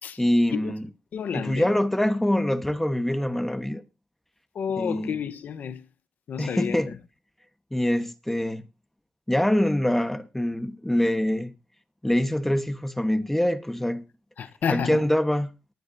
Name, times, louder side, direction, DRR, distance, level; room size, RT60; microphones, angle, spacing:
voice 1, 0.2-0.8 1.3-3.8 4.8-5.2 6.4-6.9 7.7-8.6 9.3-11.5 12.0-14.0 14.7-15.5, left 1 dB, 10° left, 1.3 m, -24 dB
voice 2, 1.1-1.7 4.5-5.8 6.3-6.9 14.4-15.0, left 7 dB, 70° left, 1.1 m, -30 dB
18.5 x 10.0 x 2.8 m
cardioid pair, 75°, 3 cm